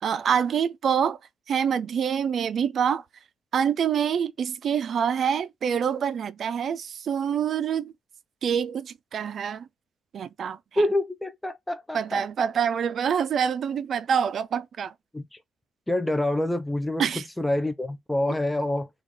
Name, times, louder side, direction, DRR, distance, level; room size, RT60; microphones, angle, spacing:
voice 1, 0.0-1.2 1.5-3.0 3.5-7.9 8.4-9.7 10.1-10.8 11.9-14.9 17.0-17.2, right 7 dB, 60° right, 0.4 m, -26 dB
voice 2, 10.8-12.2 15.1-15.4 15.9-18.9, left 1 dB, 10° left, 0.4 m, -27 dB
3.4 x 2.4 x 3.7 m
cardioid pair, 90°, 0 cm